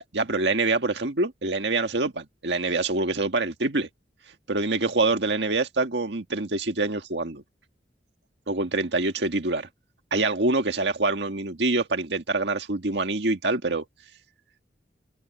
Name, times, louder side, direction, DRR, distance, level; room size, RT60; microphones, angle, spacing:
voice 1, 0.1-3.9 4.5-7.4 8.5-9.7 10.1-13.8, right 3 dB, 75° right, 1.7 m, -25 dB
open air
head